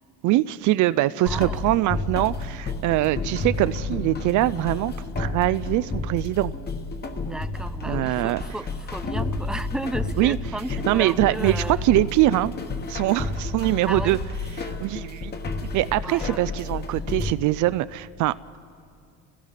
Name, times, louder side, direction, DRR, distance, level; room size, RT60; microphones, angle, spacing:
voice 1, 0.2-6.5 7.9-8.4 10.2-10.4 10.9-12.5 12.9-14.2 14.5-15.3 15.7-18.6, right 16 dB, 60° right, 16 dB, 0.5 m, -23 dB
voice 2, 1.2-1.6 7.2-11.9 13.9-14.2 16.0-16.4, right 1 dB, ahead, 11 dB, 0.5 m, -34 dB
sound 1, 1.3-17.3, left 3 dB, 30° left, 1.2 m, -31 dB
Boom, 3.0-6.0, left 9 dB, 55° left, 0.8 m, -39 dB
29.5 x 16.5 x 5.8 m, 2.4 s
cardioid pair, 135°, 33 cm